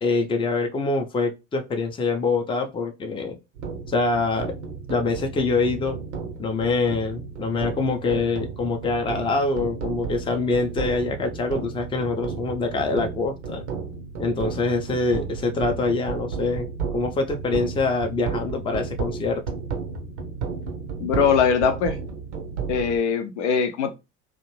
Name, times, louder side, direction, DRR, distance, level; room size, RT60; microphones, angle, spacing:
voice 1, 0.0-3.4 3.9-4.5 4.9-6.0 6.4-13.6 14.2-16.7 16.9-19.4, left 3 dB, 15° left, 0.4 m, -25 dB
sound 1, 3.6-23.0, right 5 dB, 75° right, 0.6 m, -33 dB
voice 2, 21.0-22.0 22.7-23.9, left 6 dB, 75° left, 0.6 m, -21 dB
2.4 x 2.0 x 3.0 m
figure-of-eight pair, 55°, 36 cm